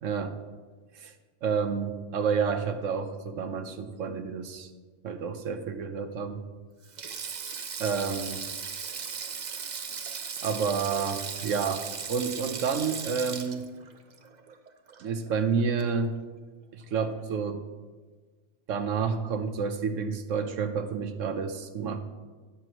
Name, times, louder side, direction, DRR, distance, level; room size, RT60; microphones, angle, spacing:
voice 1, 0.0-0.4 1.0-1.1 1.4-4.7 5.0-6.4 7.8-8.4 10.4-13.7 15.0-16.1 16.7-17.6 18.7-22.0, right 6 dB, 85° right, 8 dB, 1.2 m, -29 dB
Sink (filling or washing), 6.8-15.3 15.6-15.8 17.0-17.2, right 6 dB, 45° right, 0.6 m, -37 dB
13.0 x 9.6 x 3.0 m, 1.4 s
omnidirectional pair, 1.3 m